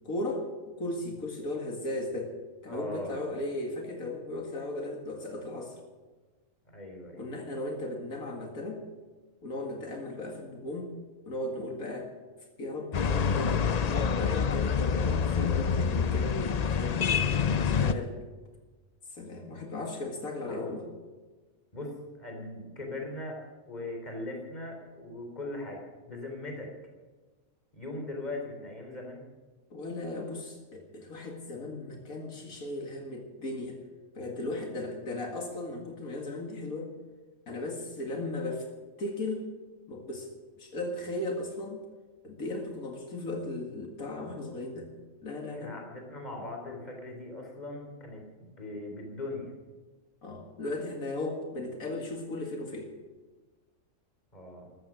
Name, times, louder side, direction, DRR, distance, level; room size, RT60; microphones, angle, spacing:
voice 1, 0.0-2.3 2.6-5.8 7.2-8.9 9.4-11.0 11.3-12.1 12.6-17.2 17.5-18.2 19.1-20.9 29.7-33.8 34.2-36.9 37.5-38.7 39.0-39.5 39.9-40.3 40.6-41.9 42.2-44.9 45.2-45.7 50.2-52.9, left 2 dB, 90° left, 2 dB, 2.5 m, -36 dB
voice 2, 2.7-3.2 6.7-7.2 20.5-20.8 21.7-23.4 23.7-26.7 27.7-29.2 45.5-48.2 48.5-49.5 54.3-54.7, left 2 dB, 30° left, 1 dB, 3.8 m, -39 dB
sound 1, 12.9-17.9, left 6 dB, 55° left, 0.4 m, -27 dB
14.0 x 13.5 x 6.2 m, 1.3 s
omnidirectional pair, 1.4 m